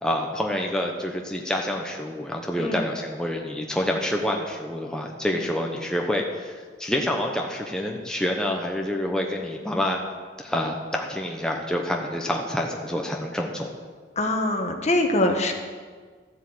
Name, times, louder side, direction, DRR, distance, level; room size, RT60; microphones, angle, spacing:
voice 1, 0.0-10.0 10.4-13.7, left 1 dB, 5° left, 0 dB, 1.0 m, -27 dB
voice 2, 14.1-15.5, left 1 dB, 40° left, 4 dB, 1.4 m, -23 dB
13.0 x 8.0 x 7.9 m, 1.6 s
head